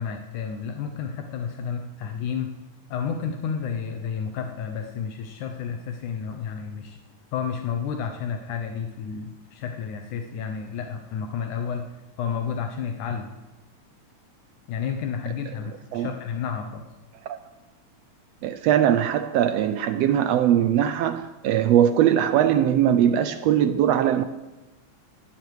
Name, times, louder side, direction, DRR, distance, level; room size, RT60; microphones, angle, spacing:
voice 1, 0.0-2.5 2.9-7.0 7.3-11.8 12.2-13.3 14.7-16.8, left 7 dB, 80° left, 4 dB, 2.5 m, -31 dB
voice 2, 18.4-24.2, right 10 dB, 80° right, 11 dB, 1.5 m, -21 dB
18.5 x 14.5 x 4.9 m, 1.1 s
omnidirectional pair, 3.5 m